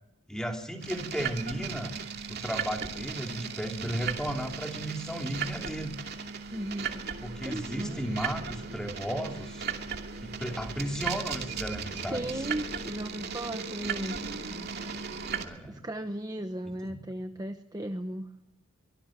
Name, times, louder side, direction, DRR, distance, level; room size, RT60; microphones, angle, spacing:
voice 1, 0.3-1.9 2.3-5.9 7.2-9.6 10.2-12.4 15.4-15.8 16.8-17.0, equal, 5° left, 3 dB, 3.1 m, -34 dB
sound 1, 0.8-15.4, right 6 dB, 50° right, 2.6 m, -37 dB
voice 2, 6.5-8.0 12.1-14.3 15.7-18.3, right 1 dB, 15° right, 7 dB, 0.9 m, -36 dB
24.0 x 18.0 x 7.4 m, 0.90 s
head